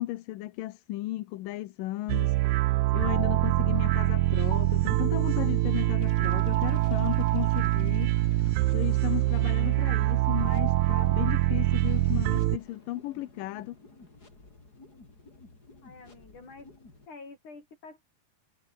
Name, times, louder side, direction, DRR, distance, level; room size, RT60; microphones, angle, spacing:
voice 1, 0.0-8.2 8.7-13.8, left 16 dB, 85° left, 2.6 m, -35 dB
sound 1, 2.1-12.6, right 17 dB, 75° right, 1.9 m, -24 dB
Keyboard (musical), 5.1-13.3, left 3 dB, 45° left, 7.3 m, -57 dB
sound 2, 6.0-17.1, left 3 dB, 25° left, 5.2 m, -53 dB
voice 2, 15.8-16.7 17.1-18.0, left 3 dB, 65° left, 8.7 m, -48 dB
omnidirectional pair, 3.8 m